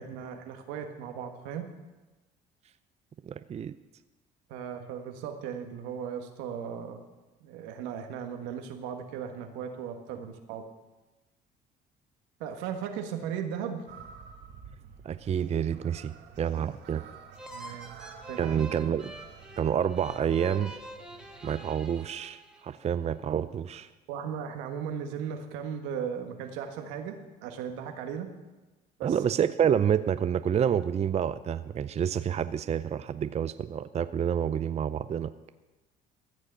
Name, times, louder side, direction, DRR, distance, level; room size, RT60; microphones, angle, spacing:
voice 1, 0.0-1.7 4.5-7.0 7.4-10.6 12.4-13.8 17.5-18.0 18.3-18.5 24.1-27.2 27.4-28.3 29.0-29.1, right 8 dB, 90° right, 5 dB, 1.5 m, -37 dB
voice 2, 3.2-3.7 15.0-17.0 17.6-17.8 18.4-19.1 19.6-20.7 21.4-23.9 29.0-35.3, right 8 dB, 35° right, 13 dB, 0.5 m, -28 dB
sound 1, 13.9-21.6, right 7 dB, 75° right, 1.7 m, -51 dB
sound 2, 17.4-22.9, right 1 dB, 5° right, 1.8 m, -46 dB
14.5 x 6.5 x 8.6 m, 1.2 s
supercardioid pair, 85°, 19 cm